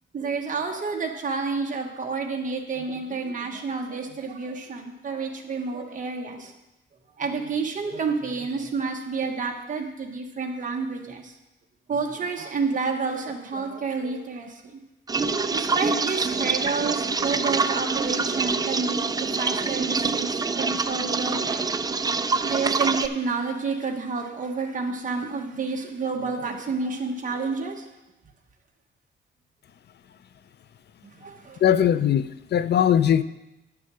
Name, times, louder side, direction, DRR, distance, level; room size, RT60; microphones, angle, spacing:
voice 1, 0.1-6.5 7.2-11.3 11.9-14.8 15.5-21.7 22.4-27.8 31.2-31.6, right 4 dB, 40° right, 2 dB, 1.3 m, -29 dB
sound 1, 15.1-23.1, right 4 dB, 20° right, 0.3 m, -25 dB
voice 2, 31.6-33.2, left 9 dB, 55° left, 14 dB, 0.5 m, -20 dB
9.5 x 6.8 x 6.1 m, 0.95 s
wide cardioid pair, 160°, 21 cm